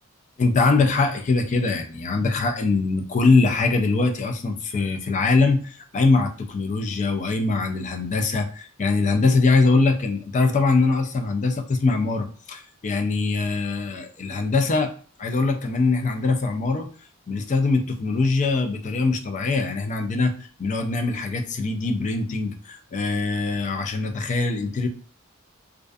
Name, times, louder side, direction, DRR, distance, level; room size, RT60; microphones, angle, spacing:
voice 1, 0.4-14.9 15.2-16.9 17.3-24.9, left 3 dB, 35° left, 6 dB, 0.3 m, -22 dB
2.5 x 2.3 x 2.3 m, 0.41 s
head